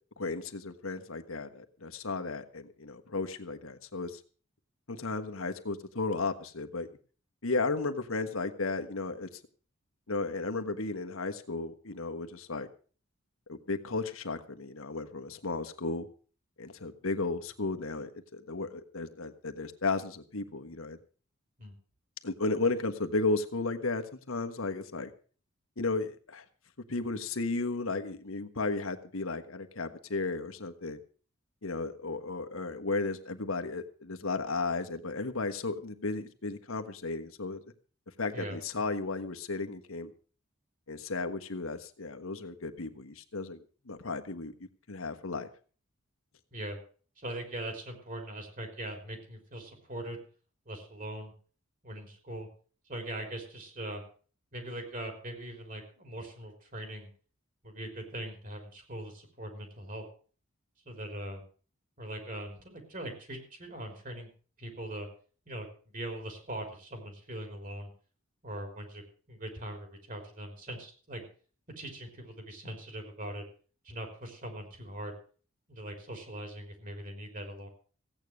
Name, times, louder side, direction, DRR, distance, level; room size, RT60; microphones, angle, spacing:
voice 1, 0.2-4.2 4.9-6.9 7.4-9.3 10.1-12.7 13.5-16.1 16.6-21.0 22.2-25.1 25.8-26.4 26.9-31.0 31.6-37.6 38.2-40.1 40.9-44.5 44.9-45.5, left 3 dB, 80° left, 7 dB, 1.4 m, -34 dB
voice 2, 38.3-38.9 46.5-46.8 47.2-50.2 50.7-51.3 51.8-52.5 52.9-54.0 54.5-57.1 57.6-60.1 60.9-61.4 62.0-64.3 64.6-65.1 65.5-67.9 68.4-71.3 71.8-73.4 73.8-75.2 75.7-77.7, right 1 dB, 40° right, 4 dB, 3.9 m, -41 dB
16.0 x 9.1 x 6.4 m, 0.41 s
head